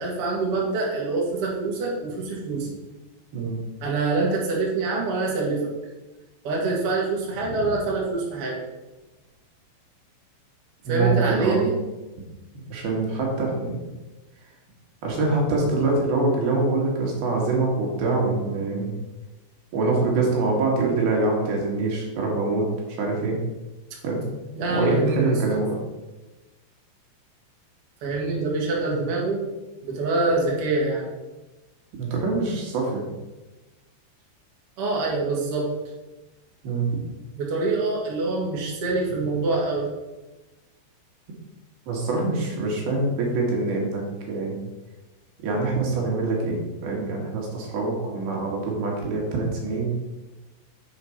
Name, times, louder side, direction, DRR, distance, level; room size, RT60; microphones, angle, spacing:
voice 1, 0.0-2.8 3.8-5.7 6.4-8.6 10.9-11.8 24.5-25.3 28.0-29.4 29.8-31.1 34.8-35.7 37.3-39.9, right 3 dB, 80° right, -3 dB, 1.3 m, -25 dB
voice 2, 10.8-11.7 12.7-13.9 15.0-18.9 19.7-22.7 23.0-23.4 24.0-24.2 24.7-25.8 32.0-33.0 36.6-36.9 41.9-44.6 45.4-49.9, right 3 dB, 60° right, -1 dB, 2.9 m, -24 dB
7.4 x 5.1 x 5.6 m, 1.1 s
omnidirectional pair, 5.7 m